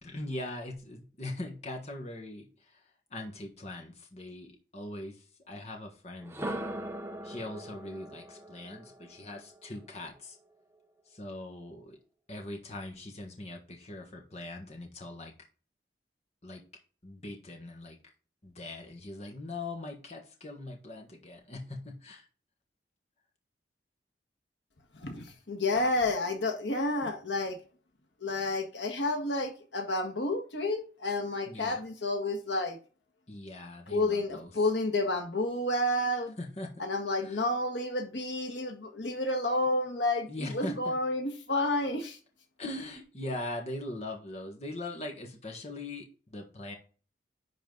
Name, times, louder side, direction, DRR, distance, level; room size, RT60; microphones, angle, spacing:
voice 1, 0.0-2.8 3.1-6.6 7.2-10.4 11.1-12.0 12.3-15.3 16.4-16.6 17.0-18.0 18.4-22.3 31.5-31.8 33.3-34.5 36.4-36.7 37.2-37.4 40.3-40.9 42.6-46.7, left 1 dB, 35° left, 1.4 m, -41 dB
sound 1, 6.2-10.2, right 1 dB, 15° right, 0.9 m, -40 dB
voice 2, 25.0-27.6 28.2-32.8 33.9-36.3 36.8-42.2, left 2 dB, 85° left, 1.6 m, -30 dB
10.5 x 4.1 x 3.9 m
head